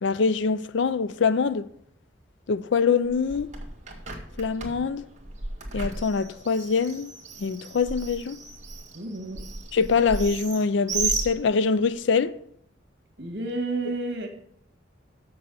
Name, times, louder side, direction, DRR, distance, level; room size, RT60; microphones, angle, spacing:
voice 1, 0.0-1.7 2.5-3.5 4.4-5.1 5.7-7.1 7.4-8.4 9.7-12.4, left 5 dB, 70° left, 0.4 m, -24 dB
Bird, 3.0-11.9, right 3 dB, 40° right, 1.9 m, -35 dB
voice 2, 8.9-9.4 13.2-14.3, right 2 dB, 60° right, 2.0 m, -31 dB
6.9 x 6.7 x 7.8 m
head